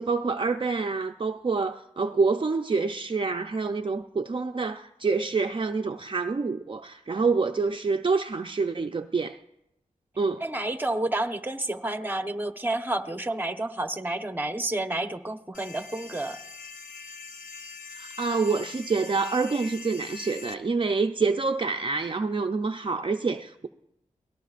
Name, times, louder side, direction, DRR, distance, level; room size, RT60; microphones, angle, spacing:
voice 1, 0.0-9.4 10.2-10.4 17.9-23.7, right 4 dB, 40° right, 0.6 m, -27 dB
voice 2, 10.4-16.4, right 2 dB, 15° right, 1.1 m, -30 dB
sound 1, 15.5-20.5, left 4 dB, 75° left, 0.8 m, -43 dB
23.5 x 18.0 x 2.5 m
cardioid pair, 50°, 13 cm